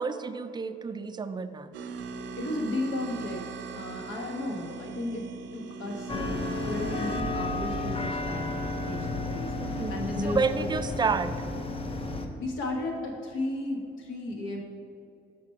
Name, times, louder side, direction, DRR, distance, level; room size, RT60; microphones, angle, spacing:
voice 1, 0.0-1.7 9.6-10.0 10.2-11.4, right 4 dB, 20° right, 11 dB, 0.3 m, -30 dB
sound 1, 1.7-8.0, right 5 dB, 70° right, 0.5 m, -39 dB
voice 2, 2.4-3.4 3.7-5.3 5.5-10.7 12.4-14.6, left 1 dB, 80° left, 2 dB, 1.1 m, -34 dB
sound 2, 6.1-12.3, left 2 dB, 30° left, 0.6 m, -32 dB
6.0 x 5.8 x 4.4 m, 2.7 s
cardioid pair, 90°, 20 cm